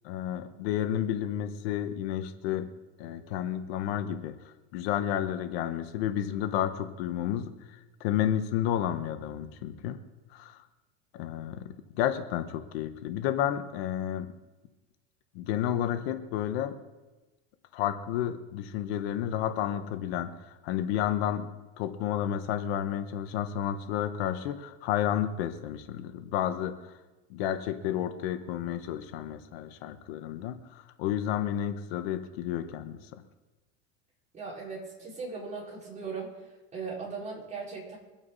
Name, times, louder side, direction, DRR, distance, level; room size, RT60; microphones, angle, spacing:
voice 1, 0.0-2.7 3.0-10.0 10.3-10.6 11.1-14.3 15.3-16.8 17.7-20.3 20.6-21.5 21.8-27.0 27.3-33.2, left 10 dB, 80° left, 9 dB, 1.3 m, -31 dB
voice 2, 34.3-36.3 36.7-38.0, right 4 dB, 25° right, -4 dB, 5.4 m, -38 dB
23.5 x 8.8 x 4.2 m, 1.1 s
supercardioid pair, 130°, 31 cm